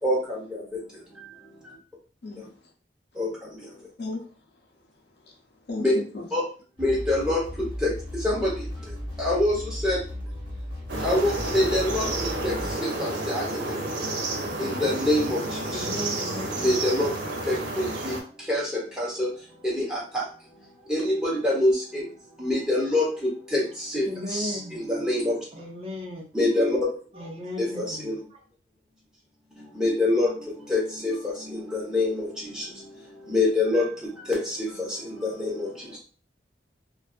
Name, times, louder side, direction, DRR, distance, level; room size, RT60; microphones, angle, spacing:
voice 1, 0.0-1.8 2.4-2.5 3.1-3.8 5.8-5.9 6.3-6.4 6.8-10.6 11.0-13.8 14.6-15.8 16.6-17.2 17.5-22.1 22.4-25.4 26.3-27.0 27.6-28.2 29.6-36.0, left 1 dB, 5° right, -4 dB, 0.9 m, -27 dB
voice 2, 2.2-2.7 4.0-6.3, left 2 dB, 70° left, 1 dB, 0.6 m, -37 dB
sound 1, 6.8-12.7, left 1 dB, 55° left, 1.2 m, -36 dB
sound 2, 10.9-18.2, right 2 dB, 85° right, 0.7 m, -31 dB
voice 3, 15.7-16.7 24.0-24.9 25.5-26.3 27.1-28.4, left 1 dB, 30° right, -1 dB, 0.5 m, -36 dB
2.6 x 2.3 x 2.4 m, 0.37 s
head